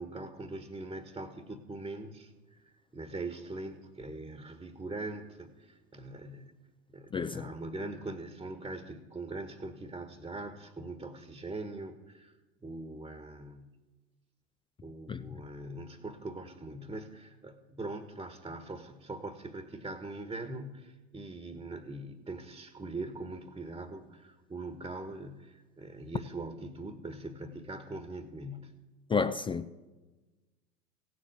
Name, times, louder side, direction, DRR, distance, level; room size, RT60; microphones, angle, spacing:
voice 1, 0.0-2.3 2.6-6.5 6.9-12.3 12.6-13.7 14.8-28.7, right 2 dB, 10° right, 1.4 m, -42 dB
voice 2, 7.1-7.5 15.1-15.3 29.1-29.7, left 5 dB, 15° left, 0.5 m, -31 dB
16.5 x 7.7 x 8.4 m
figure-of-eight pair, 80°, 37 cm